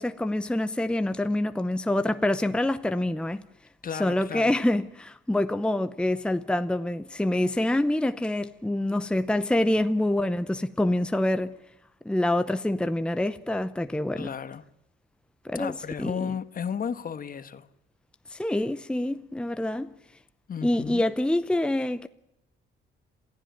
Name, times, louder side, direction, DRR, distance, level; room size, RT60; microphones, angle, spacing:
voice 1, 0.0-3.4 3.9-11.5 12.0-14.3 15.4-16.3 18.3-19.9 20.6-22.1, left 1 dB, 5° left, 0.8 m, -26 dB
voice 2, 3.8-4.5 14.2-14.6 15.5-17.7 20.5-21.0, left 7 dB, 45° left, 1.4 m, -33 dB
27.5 x 15.0 x 9.3 m
cardioid pair, 90°, 20 cm